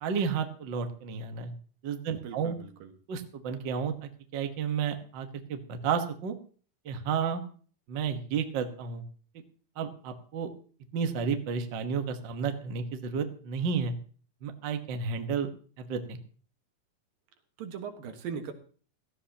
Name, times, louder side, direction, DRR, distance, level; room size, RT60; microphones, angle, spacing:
voice 1, 0.0-1.5 1.8-2.6 3.1-6.3 6.8-7.4 7.9-9.0 9.8-10.5 10.9-13.9 14.4-15.5 15.8-16.2, right 6 dB, 60° right, 6 dB, 1.1 m, -32 dB
voice 2, 2.1-2.9 17.6-18.5, right 6 dB, 75° right, 6 dB, 3.2 m, -39 dB
17.0 x 14.0 x 2.9 m, 0.42 s
omnidirectional pair, 4.0 m